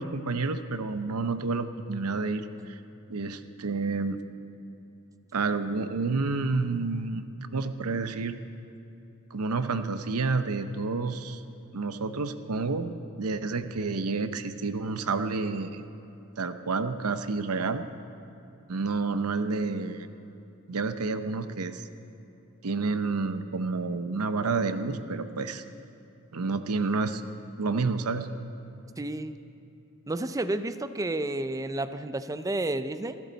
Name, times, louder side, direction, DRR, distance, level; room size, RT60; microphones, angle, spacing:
voice 1, 0.0-2.8 3.1-4.2 5.3-8.4 9.3-11.4 11.7-15.8 16.4-17.8 18.7-20.1 20.7-21.9 22.6-25.6 26.3-27.2 27.6-28.3, right 4 dB, 80° right, 10 dB, 0.8 m, -29 dB
voice 2, 29.0-29.4 30.1-33.2, right 2 dB, 15° right, 11 dB, 0.5 m, -31 dB
29.0 x 12.0 x 4.1 m, 2.8 s
head